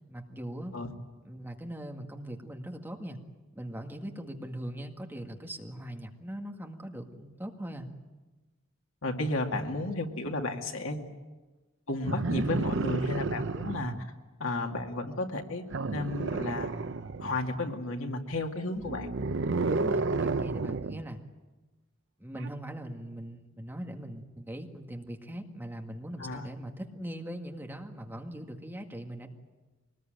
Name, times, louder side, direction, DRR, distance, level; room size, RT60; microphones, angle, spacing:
voice 1, 0.1-0.7 1.3-3.2 3.5-7.9 19.7-21.2 22.2-29.3, right 1 dB, 10° right, 3 dB, 1.9 m, -40 dB
voice 2, 9.0-11.1 11.9-14.1 14.4-15.6 15.9-16.7 17.2-19.1 26.2-26.5, left 2 dB, 85° left, 3 dB, 2.4 m, -33 dB
sound 1, 12.0-14.0 15.7-17.4 18.7-21.0 22.4-22.5, right 3 dB, 60° right, 0.7 m, -31 dB
24.0 x 20.0 x 9.1 m, 1.2 s
head